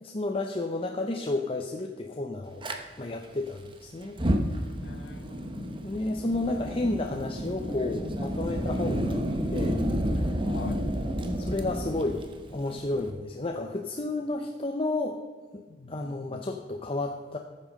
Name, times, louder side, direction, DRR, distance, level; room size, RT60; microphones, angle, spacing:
voice 1, 0.0-2.7 3.0-4.2 5.7-9.2 9.5-9.8 10.2-10.3 11.4-15.2 15.5-15.6 15.9-17.4, left 2 dB, 35° left, 3 dB, 0.7 m, -31 dB
Fire, 2.6-2.8 4.0-13.1, equal, 30° right, 1.0 m, -30 dB
voice 2, 4.8-5.8 10.4-10.8 15.7-16.4, left 2 dB, 85° left, 10 dB, 0.8 m, -42 dB
14.0 x 7.6 x 5.3 m, 1.4 s
head